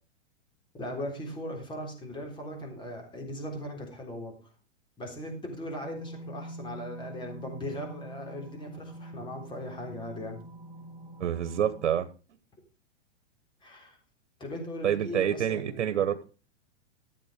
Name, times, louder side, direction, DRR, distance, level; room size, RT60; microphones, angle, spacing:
voice 1, 0.7-4.4 5.0-10.4 13.6-14.0 14.4-16.0, left 1 dB, 15° left, 3 dB, 3.8 m, -39 dB
sound 1, 5.8-12.0, right 1 dB, 5° right, 4.0 m, -45 dB
voice 2, 11.2-12.1 14.8-16.2, right 9 dB, 85° right, 9 dB, 1.4 m, -27 dB
14.0 x 7.5 x 5.2 m, 0.35 s
hypercardioid pair, 150°, 36 cm